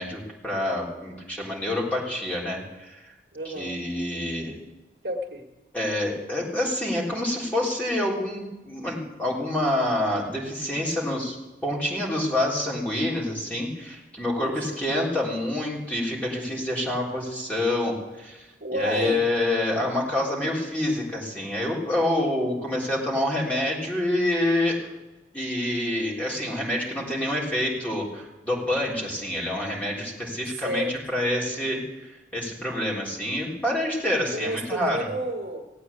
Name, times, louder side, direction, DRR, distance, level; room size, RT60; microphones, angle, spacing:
voice 1, 0.0-3.1 3.5-4.6 5.7-11.4 11.6-18.5 18.7-24.9 25.3-35.0, left 1 dB, 10° left, -4 dB, 3.7 m, -27 dB
voice 2, 3.3-3.8 5.0-5.4 14.4-14.8 18.6-19.2 30.5-31.0 34.3-35.7, right 1 dB, 60° right, 1 dB, 1.8 m, -31 dB
17.0 x 8.8 x 8.5 m, 1.1 s
head